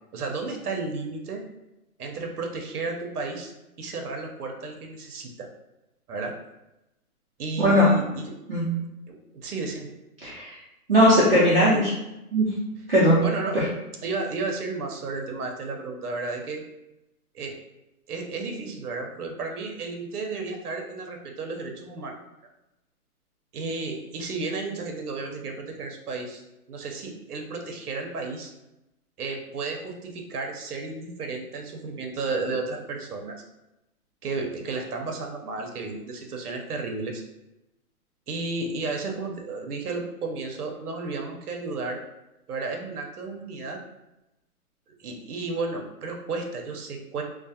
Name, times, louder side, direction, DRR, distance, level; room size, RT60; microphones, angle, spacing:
voice 1, 0.1-1.4 2.0-3.5 3.8-5.5 6.1-6.3 7.4-8.3 9.1-9.9 13.2-13.6 14.0-16.6 17.3-17.5 18.1-22.2 23.5-26.4 26.7-28.5 29.2-33.4 34.2-37.2 38.3-42.0 42.5-43.8 45.0-47.2, right 3 dB, 80° right, 3 dB, 0.7 m, -33 dB
voice 2, 10.2-10.5 10.9-11.9 12.3-12.5 12.9-13.2 13.5-13.7, equal, 40° right, -9 dB, 0.6 m, -19 dB
2.4 x 2.1 x 2.7 m, 0.93 s
hypercardioid pair, 175°, 45 cm